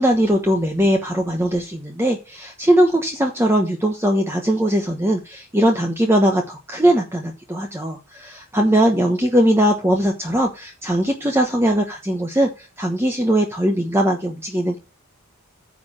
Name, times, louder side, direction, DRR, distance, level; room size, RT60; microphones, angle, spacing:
voice 1, 0.0-14.8, right 1 dB, 10° right, 2 dB, 1.0 m, -20 dB
9.5 x 4.6 x 5.8 m, 0.31 s
head